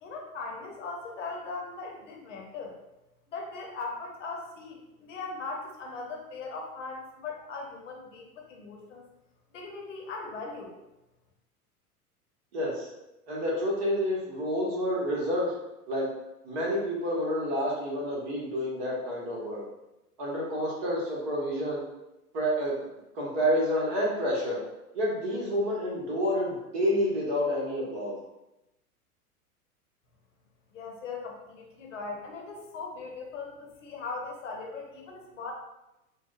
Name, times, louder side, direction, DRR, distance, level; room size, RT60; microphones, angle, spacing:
voice 1, 0.0-2.7 3.3-9.1 9.5-10.8 30.7-35.5, left 4 dB, 55° left, 1 dB, 0.8 m, -39 dB
voice 2, 12.5-12.9 13.3-15.5 15.9-16.1 16.4-19.6 20.2-21.8 22.3-22.8 23.1-24.6 24.9-28.2, equal, 40° right, -4 dB, 1.2 m, -29 dB
4.2 x 2.2 x 2.4 m, 0.94 s
figure-of-eight pair, 95°, 45 cm